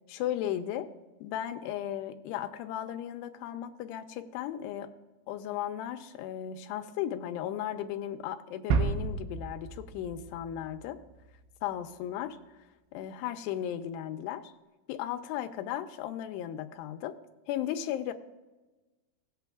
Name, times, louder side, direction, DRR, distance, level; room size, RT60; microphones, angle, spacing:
voice 1, 0.1-0.9 1.2-4.9 5.3-11.0 11.6-12.4 12.9-14.4 14.9-17.2 17.5-18.1, left 11 dB, 85° left, 8 dB, 2.8 m, -35 dB
sound 1, 8.7-11.4, right 5 dB, 80° right, 2.8 m, -32 dB
18.0 x 8.3 x 2.3 m, 1.1 s
omnidirectional pair, 4.7 m